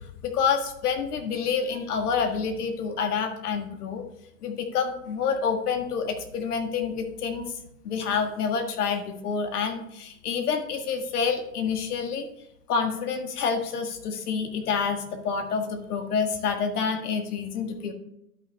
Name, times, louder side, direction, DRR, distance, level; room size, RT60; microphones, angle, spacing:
voice 1, 0.2-4.0 4.4-7.5 7.8-12.3 12.7-17.9, left 6 dB, 70° left, 5 dB, 1.6 m, -28 dB
12.0 x 5.9 x 3.3 m, 0.81 s
hypercardioid pair, 130°, 47 cm